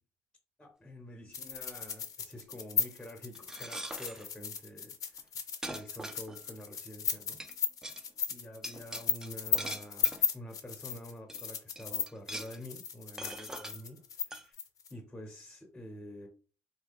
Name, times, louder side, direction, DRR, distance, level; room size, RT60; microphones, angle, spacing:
voice 1, 0.6-5.3 5.7-7.4 8.3-14.6 14.9-16.3, left 1 dB, 10° left, 3 dB, 0.8 m, -48 dB
sound 1, 1.3-14.9, left 7 dB, 55° left, 0.6 m, -35 dB
sound 2, 3.3-4.3 5.2-5.3 5.6-6.6 7.4-7.5 7.8-8.0 8.6-10.3 10.9-11.0 11.3-11.5 11.8-12.6 13.2-13.8 14.3-14.5, right 1 dB, 10° right, 0.4 m, -42 dB
3.3 x 2.2 x 3.4 m, 0.36 s
cardioid pair, 100°, 7 cm